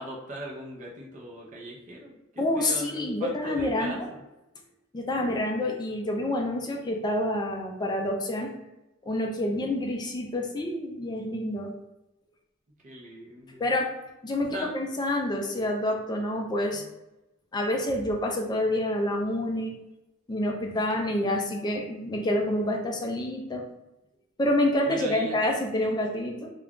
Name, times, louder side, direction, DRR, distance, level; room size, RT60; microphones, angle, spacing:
voice 1, 0.0-4.0 5.2-5.4 9.5-9.7 12.8-13.6 14.5-14.7 16.7-16.8 24.8-25.4, right 1 dB, 40° right, -2 dB, 0.6 m, -39 dB
voice 2, 2.4-4.1 4.9-8.5 9.1-11.7 13.6-13.9 14.2-16.8 17.5-19.7 20.3-23.6 24.4-26.5, left 1 dB, 20° left, 1 dB, 0.4 m, -28 dB
2.4 x 2.2 x 3.5 m, 0.96 s
head